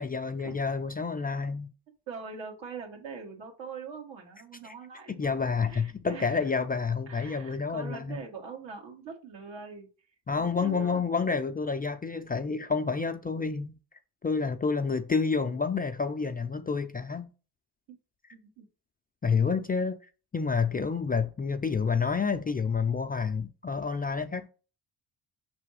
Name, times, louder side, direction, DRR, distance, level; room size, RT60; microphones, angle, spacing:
voice 1, 0.0-1.7 4.6-4.7 5.1-8.2 10.3-13.7 14.2-17.3 19.2-20.0 20.3-24.5, left 5 dB, 20° left, 0.4 m, -29 dB
voice 2, 2.1-5.4 5.7-6.5 7.1-9.9 10.3-11.1 17.9-18.0 18.3-18.7, right 5 dB, 70° right, 2.0 m, -43 dB
5.8 x 3.4 x 4.8 m
supercardioid pair, 65°, 47 cm